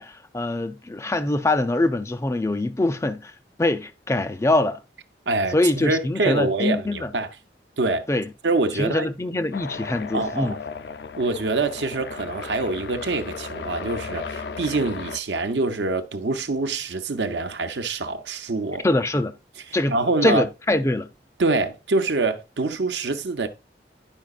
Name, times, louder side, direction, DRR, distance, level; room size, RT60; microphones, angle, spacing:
voice 1, 0.0-3.3 3.6-4.8 5.5-7.1 8.1-8.3 8.8-10.6 18.8-19.3 19.7-20.0 20.2-21.1, left 2 dB, 15° left, 0.4 m, -23 dB
voice 2, 5.3-7.3 7.8-8.1 8.4-9.1 10.1-10.6 11.2-18.9 19.9-20.4 21.4-23.5, right 3 dB, 85° right, 0.7 m, -25 dB
sound 1, 9.5-15.2, left 5 dB, 75° left, 0.4 m, -35 dB
10.5 x 4.8 x 2.4 m
head